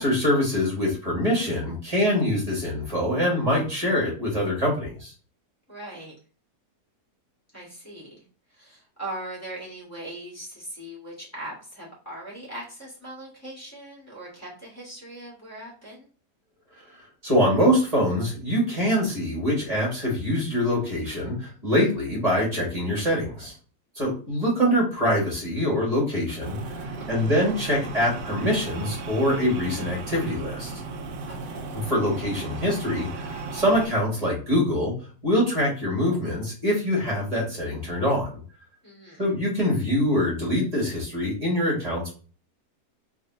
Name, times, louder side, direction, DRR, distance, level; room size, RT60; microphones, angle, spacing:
voice 1, 0.0-5.1 17.2-23.5 23.9-30.7 31.7-34.9 35.2-38.3 39.2-42.2, equal, 25° right, -4 dB, 1.7 m, -24 dB
voice 2, 5.7-6.1 7.5-8.2 8.5-16.1 27.2-27.5 31.3-31.8 38.8-39.2, right 1 dB, 10° left, -6 dB, 1.7 m, -40 dB
sound 1, 26.4-33.9, right 3 dB, 85° right, 1.2 m, -35 dB
4.0 x 3.1 x 2.7 m, 0.38 s
omnidirectional pair, 1.8 m